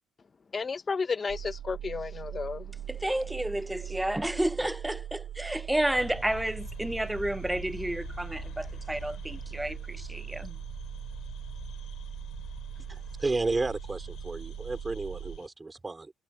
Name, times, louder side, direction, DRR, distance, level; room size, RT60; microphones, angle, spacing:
voice 1, 0.5-2.7, left 5 dB, 35° left, 1.5 m, -32 dB
sound 1, 1.3-15.4, right 11 dB, 75° right, 3.5 m, -41 dB
voice 2, 2.9-10.5, right 1 dB, 5° right, 0.9 m, -31 dB
sound 2, 5.9-15.5, left 11 dB, 80° left, 3.3 m, -47 dB
voice 3, 12.9-16.1, right 3 dB, 25° right, 4.7 m, -32 dB
cardioid pair, 90°, 0 cm